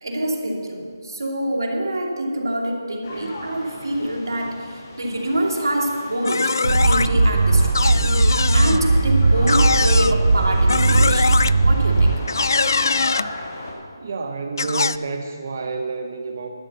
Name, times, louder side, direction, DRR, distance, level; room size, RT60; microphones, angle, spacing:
voice 1, 0.0-12.4, right 1 dB, 85° right, 0 dB, 2.5 m, -26 dB
sound 1, 3.0-13.7, left 2 dB, 35° left, 1.9 m, -36 dB
sound 2, 6.2-7.1 7.7-8.8 9.5-10.1 10.7-11.5 12.3-13.3 14.6-15.0, left 4 dB, 60° left, 0.3 m, -22 dB
sound 3, 6.6-12.5, right 2 dB, 60° right, 0.8 m, -18 dB
voice 2, 14.0-16.5, right 4 dB, 35° right, 3 dB, 0.7 m, -29 dB
11.5 x 8.1 x 7.0 m, 2.1 s
hypercardioid pair, 175°, 2 cm